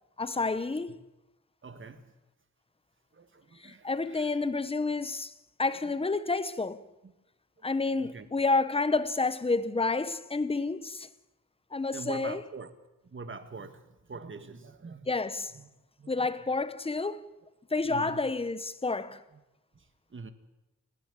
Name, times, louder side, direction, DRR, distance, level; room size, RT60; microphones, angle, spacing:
voice 1, 0.2-1.0 3.6-5.3 5.6-6.8 7.6-11.1 11.7-12.4 15.1-15.5 16.1-17.3 17.7-19.2, left 3 dB, 20° left, 0.8 m, -29 dB
voice 2, 1.6-2.1 3.1-4.5 7.0-7.1 7.6-7.7 8.0-8.3 11.9-12.7 13.0-15.1 15.5-15.7 16.0-16.3 17.8-18.3 19.3-19.4 19.7-20.3, right 4 dB, 40° right, 1.6 m, -44 dB
29.0 x 10.5 x 8.9 m
wide cardioid pair, 160°, 31 cm